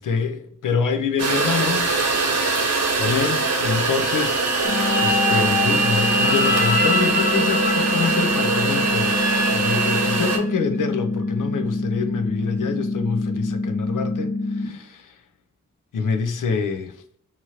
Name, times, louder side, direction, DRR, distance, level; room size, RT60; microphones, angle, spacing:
voice 1, 0.0-1.9 3.0-15.2 15.9-16.9, left 5 dB, 85° left, 0.5 m, -26 dB
sound 1, 1.2-10.4, right 3 dB, 55° right, 0.6 m, -22 dB
sound 2, 4.5-10.5, left 5 dB, 30° left, 0.5 m, -28 dB
sound 3, 4.7-14.7, left 2 dB, 55° left, 1.2 m, -26 dB
2.9 x 2.5 x 2.7 m
cardioid pair, 60°, 31 cm